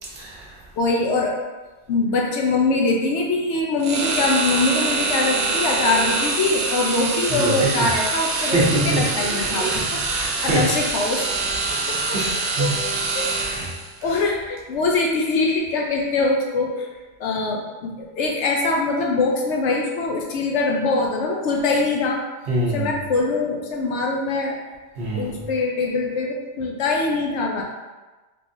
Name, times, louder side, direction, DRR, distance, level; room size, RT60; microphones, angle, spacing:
voice 1, 0.0-0.6 7.3-7.8 8.3-10.8 11.7-11.8 12.1-12.8 13.2-13.7 22.5-23.0 25.0-25.4, right 2 dB, 55° right, -5 dB, 0.9 m, -25 dB
voice 2, 0.8-1.3 1.9-10.0 10.4-11.2 11.9-12.0 12.6-12.7 13.1-13.3 14.0-16.9 17.2-22.2 22.7-24.6 25.1-27.6, left 3 dB, 70° left, -1 dB, 0.9 m, -23 dB
sound 1, 3.8-13.9, right 3 dB, 90° right, 1.0 m, -25 dB
3.6 x 3.0 x 2.6 m, 1.2 s
omnidirectional pair, 1.3 m